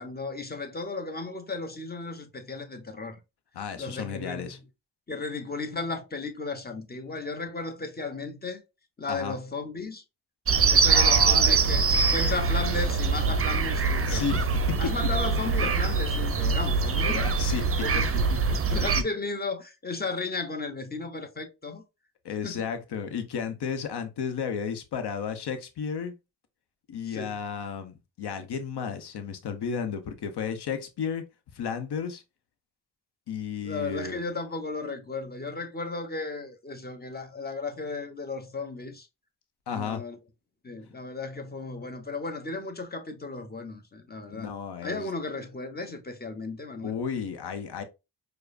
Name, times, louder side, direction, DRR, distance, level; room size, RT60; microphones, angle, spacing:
voice 1, 0.0-3.2 3.8-4.6 5.1-8.6 9.0-10.0 10.7-14.2 14.8-17.2 17.8-18.2 18.5-21.8 22.4-22.7 27.0-27.4 33.6-39.1 39.7-40.2 40.6-44.5 44.8-47.0, left 3 dB, 20° left, 0.9 m, -35 dB
voice 2, 3.5-4.6 9.1-9.3 10.9-11.8 14.0-14.8 15.6-15.7 17.0-18.6 18.9-19.0 22.2-26.1 26.9-31.2 31.5-32.2 33.3-34.2 39.7-40.0 44.3-45.1 46.8-47.8, left 6 dB, 65° left, 0.9 m, -33 dB
sound 1, 10.5-19.0, right 5 dB, 35° right, 0.5 m, -23 dB
4.7 x 2.2 x 2.5 m
cardioid pair, 50°, 42 cm